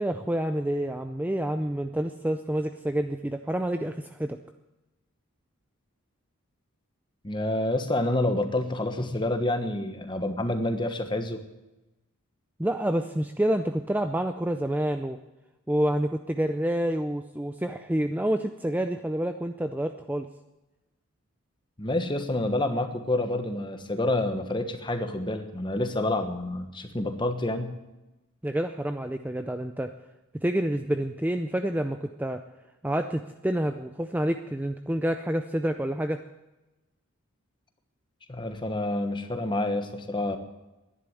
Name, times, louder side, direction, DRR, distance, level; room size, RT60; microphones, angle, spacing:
voice 1, 0.0-4.4 12.6-15.2 15.7-20.3 28.4-29.9 30.4-32.4 32.8-36.2, right 1 dB, 5° right, 7 dB, 0.4 m, -28 dB
voice 2, 7.2-11.4 21.8-27.7 38.3-40.4, left 1 dB, 20° left, 7 dB, 1.2 m, -28 dB
11.5 x 10.5 x 9.7 m, 1.0 s
head